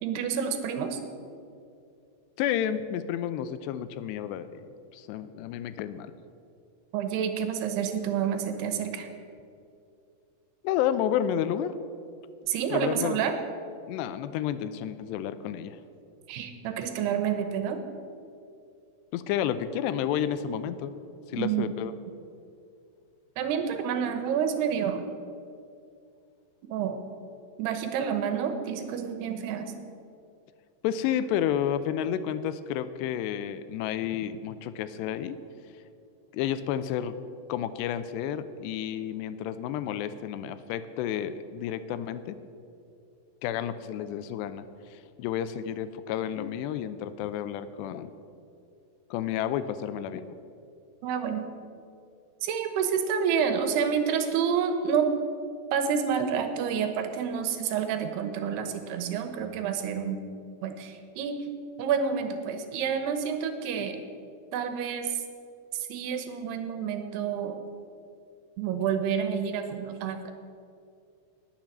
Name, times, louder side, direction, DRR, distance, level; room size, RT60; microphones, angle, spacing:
voice 1, 0.0-1.0 6.9-9.1 12.5-13.3 16.3-17.8 21.3-21.7 23.4-25.0 26.7-27.0 27.6-29.7 51.0-51.5 52.4-55.1 55.7-60.2 60.6-61.4 61.8-64.0 64.5-65.1 65.9-67.6 68.6-70.3, right 7 dB, 75° right, 7 dB, 3.0 m, -29 dB
voice 2, 2.4-4.7 4.9-6.1 10.6-11.8 12.7-13.3 13.9-15.8 19.1-20.9 21.3-21.9 30.8-35.4 36.3-37.1 37.5-42.4 43.4-44.6 44.9-48.1 49.1-50.4, left 10 dB, 85° left, 12 dB, 2.8 m, -31 dB
19.5 x 7.4 x 7.4 m, 2.5 s
omnidirectional pair, 4.9 m